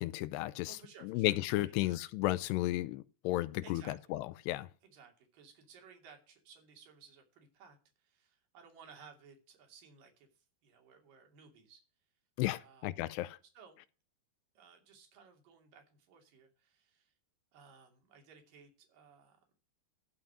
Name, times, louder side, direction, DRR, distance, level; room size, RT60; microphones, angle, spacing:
voice 1, 0.0-0.8 1.0-4.7 12.4-13.4, left 17 dB, 85° left, 2.7 m, -34 dB
voice 2, 0.7-2.0 3.6-4.1 4.8-11.8 12.6-12.9 13.5-13.8 14.5-17.1 17.5-19.4, right 6 dB, 55° right, 4.2 m, -59 dB
12.5 x 5.7 x 6.1 m
omnidirectional pair, 4.9 m